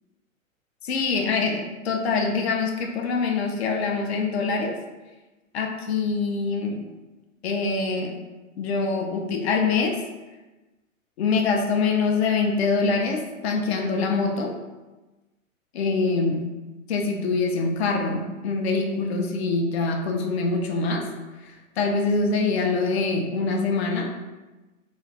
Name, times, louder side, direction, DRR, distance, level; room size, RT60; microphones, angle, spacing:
voice 1, 0.8-4.8 5.5-6.9 7.4-8.2 8.6-10.0 11.2-14.6 15.7-16.5 16.9-21.1 21.4-24.3, left 4 dB, 50° left, 3 dB, 0.5 m, -24 dB
2.5 x 2.3 x 3.3 m, 1.1 s
figure-of-eight pair, 110°, 41 cm